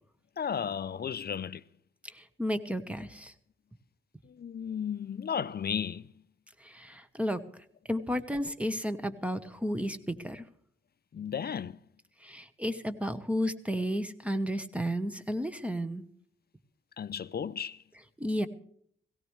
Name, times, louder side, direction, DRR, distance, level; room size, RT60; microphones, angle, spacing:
voice 1, 0.4-1.6 4.2-6.1 11.1-11.8 17.0-17.8, left 7 dB, 50° left, 0.5 m, -34 dB
voice 2, 2.1-3.3 6.6-7.4 7.9-10.4 12.2-16.0 18.2-18.5, equal, 5° right, 1.0 m, -32 dB
17.5 x 17.0 x 3.2 m
wide cardioid pair, 105°, 21 cm